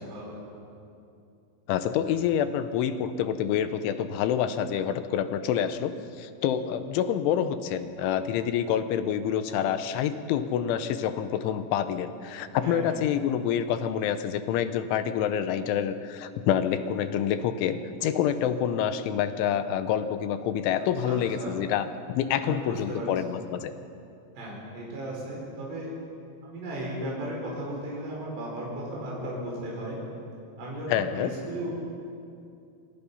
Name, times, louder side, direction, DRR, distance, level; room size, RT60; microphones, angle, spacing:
voice 1, 0.0-0.4 12.6-13.0 21.0-21.6 22.4-23.1 24.4-25.9 26.4-30.0 30.6-31.7, right 1 dB, 90° right, -4 dB, 7.6 m, -35 dB
voice 2, 1.7-23.7 30.9-31.3, left 9 dB, 80° left, 10 dB, 3.4 m, -27 dB
26.0 x 26.0 x 5.6 m, 2.6 s
omnidirectional pair, 5.6 m